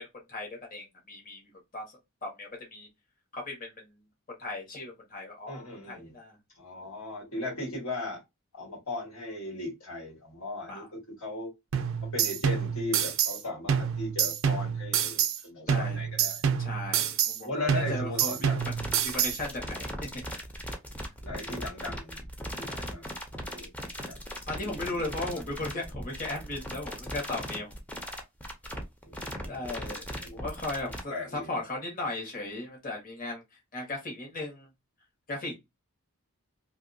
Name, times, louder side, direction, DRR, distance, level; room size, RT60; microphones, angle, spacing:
voice 1, 0.3-1.4 1.7-1.8 2.2-2.9 3.3-3.8 4.4-6.3 10.7-10.9 15.7-16.0 16.6-18.5 19.0-20.1 24.5-27.7 29.5-30.0 30.3-33.4 33.7-34.7 35.3-35.5, left 2 dB, 40° left, 1.3 m, -36 dB
voice 2, 5.5-6.1 6.6-8.2 8.5-11.5 12.1-16.4 17.4-18.7 21.2-22.2 22.5-23.2 23.6-23.7 24.0-24.2 24.6-25.3 29.0-29.7 30.2-30.4 30.8-31.5, left 2 dB, 85° left, 1.9 m, -38 dB
sound 1, 11.7-13.4 13.7-15.4 15.7-17.4 17.7-19.4, right 8 dB, 65° right, 0.4 m, -27 dB
sound 2, 18.6-31.0, equal, 5° left, 0.5 m, -38 dB
2.7 x 2.7 x 2.6 m
head